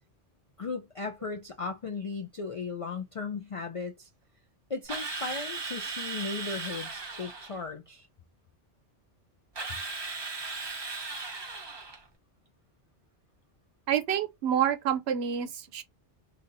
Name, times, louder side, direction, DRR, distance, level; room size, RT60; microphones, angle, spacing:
voice 1, 0.6-4.1 4.7-8.1, left 4 dB, 60° left, 0.3 m, -36 dB
Drill, 4.9-7.6 9.6-12.0, right 4 dB, 25° right, 0.7 m, -37 dB
voice 2, 13.9-15.8, right 9 dB, 75° right, 0.9 m, -28 dB
2.8 x 2.7 x 3.8 m
omnidirectional pair, 1.1 m